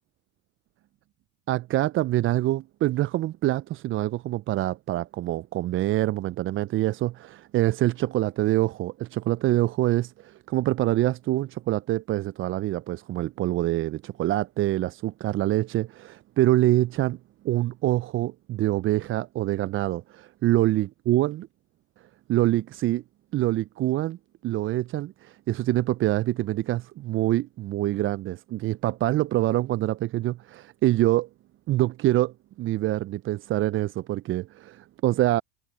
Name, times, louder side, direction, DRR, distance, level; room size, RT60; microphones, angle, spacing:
voice 1, 1.5-17.2 17.4-21.5 22.3-23.0 23.3-24.2 24.4-31.3 31.7-35.4, right 15 dB, 35° right, 0.4 m, -25 dB
hypercardioid pair, 80°, 38 cm